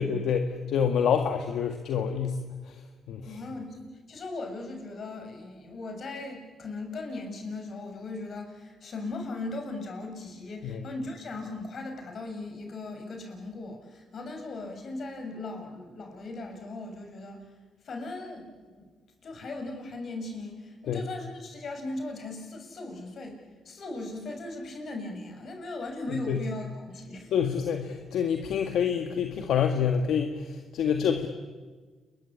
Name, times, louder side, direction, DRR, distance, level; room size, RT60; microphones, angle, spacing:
voice 1, 0.0-2.8 3.1-3.4 10.6-10.9 20.9-21.0 26.1-26.4 27.3-31.3, left 7 dB, 75° left, 5 dB, 1.8 m, -27 dB
voice 2, 3.2-17.4 17.8-18.9 19.2-23.4 23.6-27.3, left 2 dB, 50° left, 4 dB, 6.7 m, -38 dB
29.5 x 22.5 x 8.6 m, 1.4 s
cardioid pair, 90°, 0 cm